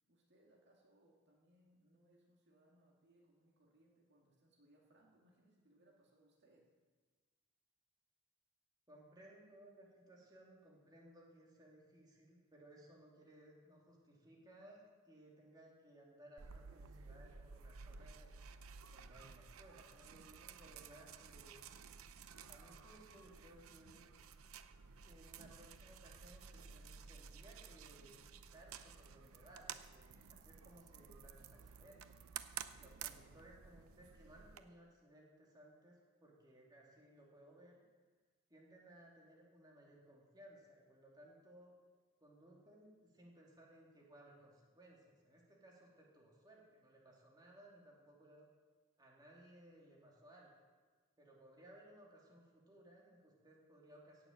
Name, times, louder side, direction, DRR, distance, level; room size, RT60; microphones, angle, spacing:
voice 1, 0.1-6.7, right 1 dB, 55° right, -2 dB, 2.1 m, -71 dB
voice 2, 8.9-18.4 18.9-21.6 22.5-24.1 25.0-32.2 32.8-37.8 38.5-41.7 42.2-48.5 49.0-50.6 51.2-54.3, right 1 dB, 20° right, -3 dB, 2.7 m, -62 dB
sound 1, 16.4-34.6, right 7 dB, 85° right, 0.7 m, -54 dB
17.5 x 6.9 x 7.5 m, 1.4 s
head